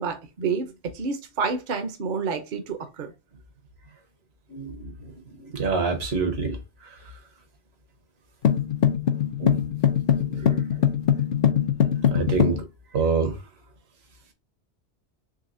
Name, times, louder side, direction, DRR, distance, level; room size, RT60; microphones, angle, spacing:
voice 1, 0.0-3.1, right 5 dB, 55° right, 0.8 m, -29 dB
voice 2, 4.5-7.0 9.4-9.6 10.1-10.9 12.1-12.6 12.9-13.4, right 4 dB, 70° right, 1.3 m, -27 dB
sound 1, 8.4-12.6, left 9 dB, 60° left, 0.6 m, -22 dB
4.0 x 3.2 x 2.5 m
omnidirectional pair, 1.1 m